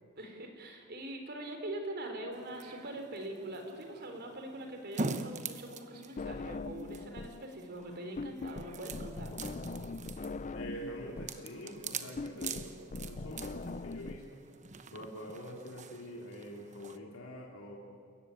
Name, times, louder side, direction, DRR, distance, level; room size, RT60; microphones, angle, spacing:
voice 1, 0.2-9.3, right 1 dB, 50° right, 4 dB, 3.8 m, -43 dB
sound 1, 2.3-17.0, right 3 dB, 35° right, 1.0 m, -44 dB
sound 2, 6.2-7.4 7.7-14.2, left 3 dB, 35° left, 0.6 m, -41 dB
voice 2, 10.5-14.4 14.9-17.8, equal, 80° left, -1 dB, 3.2 m, -45 dB
29.0 x 15.0 x 9.2 m, 2.3 s
head